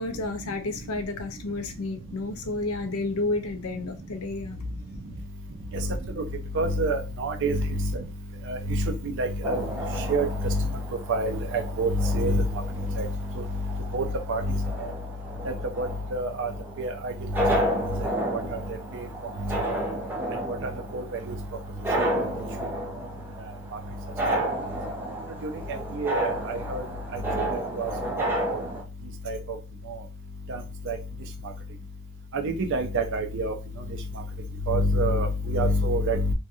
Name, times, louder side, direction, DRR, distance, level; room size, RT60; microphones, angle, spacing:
voice 1, 0.0-4.6, left 2 dB, 75° left, 7 dB, 0.5 m, -31 dB
voice 2, 6.5-7.9 8.5-9.6 10.1-10.6 11.1-12.5 13.0-13.1 13.9-14.9 15.8-16.5 16.8-17.1 18.9-19.0 19.6-19.8 20.9-21.3 25.4-25.5 26.0-26.8 27.4-27.5 27.7-27.9 28.2-28.6 29.3-29.4 30.5-30.6 30.9-31.0 32.4-33.5 34.7-36.3, right 1 dB, 60° right, 4 dB, 0.4 m, -26 dB
sound 1, 9.4-28.8, right 1 dB, 10° right, 0.7 m, -32 dB
2.8 x 2.3 x 2.5 m, 0.30 s
head